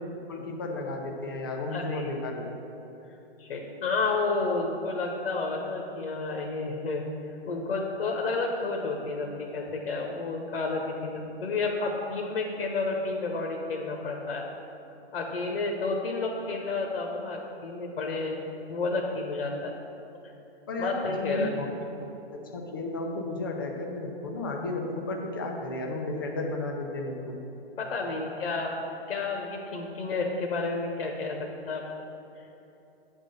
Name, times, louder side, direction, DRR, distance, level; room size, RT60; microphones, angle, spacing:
voice 1, 0.3-2.5 20.7-21.7 22.3-27.4, left 2 dB, 20° left, 1 dB, 0.5 m, -33 dB
voice 2, 1.7-2.1 3.4-7.0 7.5-14.4 15.1-19.7 20.8-21.5 27.8-28.7 29.1-31.8, left 3 dB, 70° left, 0 dB, 1.2 m, -31 dB
8.7 x 3.8 x 6.6 m, 3.0 s
hypercardioid pair, 170°, 32 cm